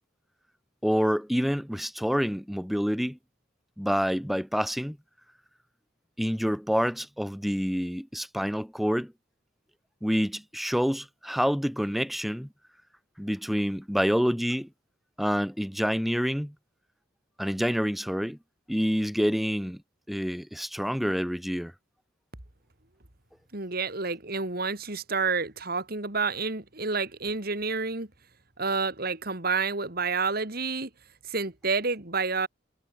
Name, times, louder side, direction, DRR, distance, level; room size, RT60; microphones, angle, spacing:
voice 1, 0.8-3.2 3.8-5.0 6.2-9.1 10.0-12.5 13.2-14.7 15.2-16.5 17.4-18.4 18.7-19.8 20.1-21.7, equal, ahead, 2.5 m, -27 dB
voice 2, 23.5-28.1 28.6-30.9 31.3-32.5, right 4 dB, 50° right, 2.8 m, -29 dB
head